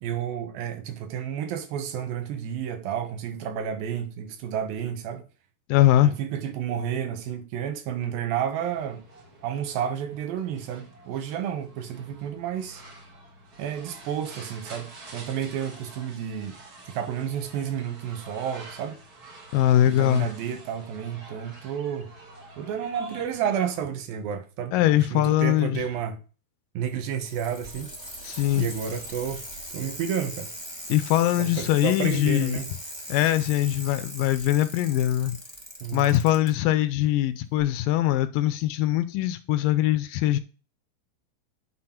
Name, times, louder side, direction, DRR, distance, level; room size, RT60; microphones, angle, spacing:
voice 1, 0.0-5.2 6.0-9.0 9.4-12.8 13.6-16.6 16.9-19.0 19.9-22.1 22.6-26.2 26.7-27.9 28.2-29.4 29.7-30.5 31.4-32.7 35.8-36.1, right 8 dB, 80° right, 2.9 m, -31 dB
voice 2, 5.7-6.1 19.5-20.3 24.7-25.8 28.2-28.7 30.9-32.6 33.1-35.4 35.9-40.4, left 13 dB, 80° left, 2.1 m, -22 dB
sound 1, 8.6-23.8, right 2 dB, 55° right, 1.1 m, -47 dB
Bicycle, 26.9-36.5 37.6-37.7, equal, 30° right, 0.5 m, -40 dB
9.6 x 4.0 x 4.4 m
omnidirectional pair, 4.1 m